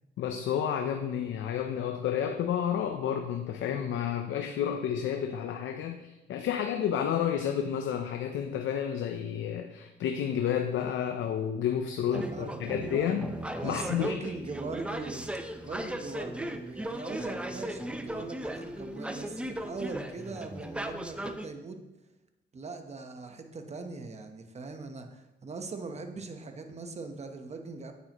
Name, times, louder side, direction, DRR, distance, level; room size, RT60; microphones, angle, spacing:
voice 1, 0.2-13.3 13.6-14.1, left 9 dB, 75° left, 5 dB, 0.7 m, -30 dB
sound 1, 12.1-21.5, right 1 dB, 5° right, 0.6 m, -37 dB
voice 2, 12.1-13.2 13.6-15.3 15.6-21.8 22.5-27.9, right 3 dB, 35° right, 6 dB, 1.0 m, -40 dB
8.9 x 8.5 x 3.0 m, 1.0 s
cardioid pair, 90°, 20 cm